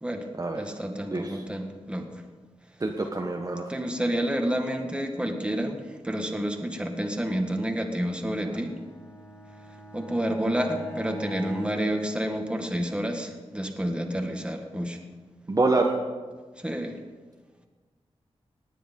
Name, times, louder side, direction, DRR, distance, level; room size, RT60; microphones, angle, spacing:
voice 1, 0.5-2.2 3.7-8.8 9.9-15.0 16.6-17.0, equal, 10° right, 3 dB, 1.8 m, -29 dB
voice 2, 2.8-3.6 15.5-16.0, right 3 dB, 30° right, 2 dB, 1.2 m, -25 dB
Bowed string instrument, 8.4-13.0, equal, 25° left, 4.6 m, -43 dB
18.5 x 10.0 x 5.4 m, 1.4 s
wide cardioid pair, 100°, 11 cm